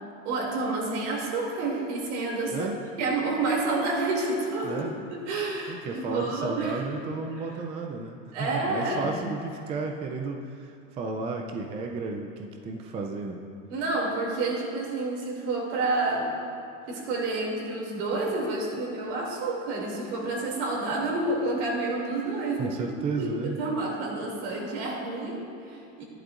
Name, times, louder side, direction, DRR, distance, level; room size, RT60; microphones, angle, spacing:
voice 1, 0.2-2.7 3.0-4.7 5.3-6.7 8.3-9.2 13.7-16.4 16.9-22.7 23.2-26.0, right 2 dB, 65° right, -1 dB, 2.7 m, -29 dB
voice 2, 4.6-4.9 5.7-13.4 22.6-23.6, right 4 dB, 15° right, 3 dB, 0.3 m, -33 dB
14.0 x 11.0 x 2.5 m, 2.5 s
supercardioid pair, 145°, 39 cm